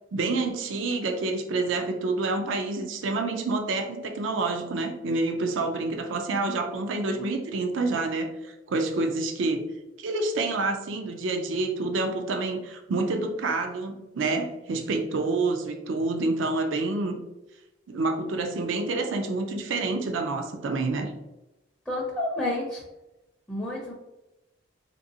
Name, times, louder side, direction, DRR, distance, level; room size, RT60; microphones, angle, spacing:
voice 1, 0.1-9.6 10.0-17.2 17.9-21.1, right 3 dB, 80° right, 5 dB, 0.5 m, -28 dB
voice 2, 21.9-22.8 23.5-23.9, left 1 dB, 5° left, -4 dB, 0.5 m, -29 dB
3.4 x 2.6 x 2.6 m, 0.97 s
head